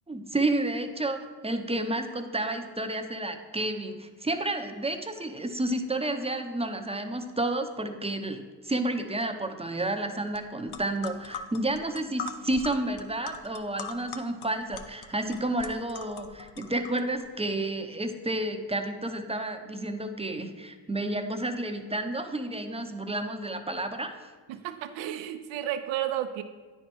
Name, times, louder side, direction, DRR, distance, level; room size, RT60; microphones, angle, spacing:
voice 1, 0.1-24.3, right 2 dB, 15° right, 6 dB, 0.7 m, -31 dB
sound 1, 10.3-10.4 10.7-17.2, left 5 dB, 55° left, 0.8 m, -41 dB
voice 2, 24.5-26.4, right 11 dB, 75° right, 8 dB, 0.7 m, -32 dB
9.6 x 4.6 x 4.5 m, 1.4 s
supercardioid pair, 70°, 46 cm